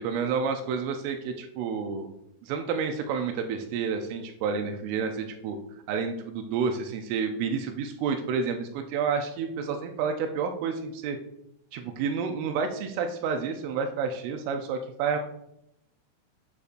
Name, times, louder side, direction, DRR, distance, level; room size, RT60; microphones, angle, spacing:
voice 1, 0.0-2.1 2.4-5.6 5.9-11.2 11.7-15.2, right 6 dB, 85° right, 5 dB, 3.2 m, -30 dB
8.9 x 8.2 x 2.6 m, 0.79 s
omnidirectional pair, 5.7 m